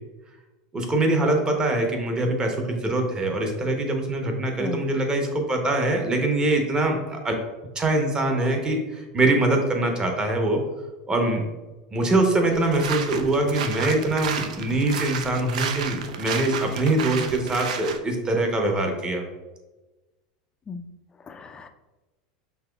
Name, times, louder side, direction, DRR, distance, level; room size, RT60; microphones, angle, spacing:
voice 1, 0.7-7.3 7.7-10.6 11.1-11.4 11.9-19.2, right 2 dB, 20° right, 3 dB, 0.8 m, -23 dB
sound 1, 12.5-18.0, right 7 dB, 85° right, 0.4 m, -32 dB
voice 2, 21.3-21.7, left 4 dB, 20° left, 8 dB, 0.3 m, -35 dB
5.7 x 2.9 x 2.3 m, 1.1 s
hypercardioid pair, 110°, 4 cm